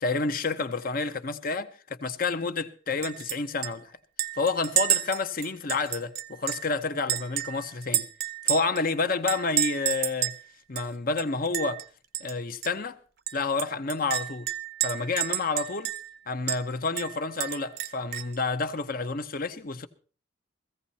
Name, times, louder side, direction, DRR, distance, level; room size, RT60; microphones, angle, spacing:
voice 1, 0.0-1.7 2.0-3.9 4.4-8.0 8.4-10.3 10.7-11.8 12.2-13.0 13.3-14.5 14.8-15.9 16.3-19.9, left 3 dB, 50° left, 1.1 m, -29 dB
Chink clink, 3.0-3.4 3.6-3.7 4.2-6.7 7.1-8.8 9.3-10.4 10.8-10.9 11.2-11.8 12.1-12.3 12.6-12.7 13.3-16.1 16.5-16.6 17.0-18.4, right 11 dB, 55° right, 0.8 m, -30 dB
16.5 x 15.0 x 4.3 m
head